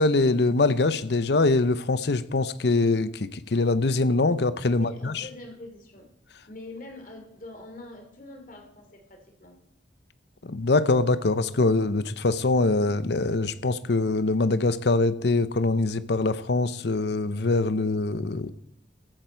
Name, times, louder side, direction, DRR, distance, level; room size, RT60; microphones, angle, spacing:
voice 1, 0.0-5.2 10.4-18.5, left 3 dB, 65° left, 14 dB, 0.7 m, -23 dB
voice 2, 4.7-6.1 6.5-9.6, left 1 dB, 45° left, 3 dB, 2.9 m, -44 dB
14.5 x 12.0 x 4.6 m, 0.76 s
head